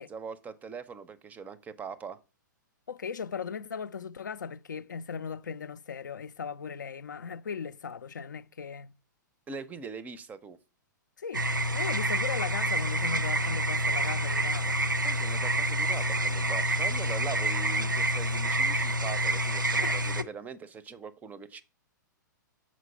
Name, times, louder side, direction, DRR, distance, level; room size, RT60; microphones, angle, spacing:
voice 1, 0.0-2.2 9.5-10.6 15.0-21.6, right 5 dB, 15° right, 0.5 m, -42 dB
voice 2, 2.9-8.9 11.2-11.5 11.7-14.8 17.7-18.0 19.8-20.0, left 6 dB, 70° left, 0.4 m, -38 dB
sound 1, 11.3-20.2, right 1 dB, 85° right, 0.6 m, -28 dB
6.2 x 4.4 x 5.5 m
figure-of-eight pair, 110°, 10 cm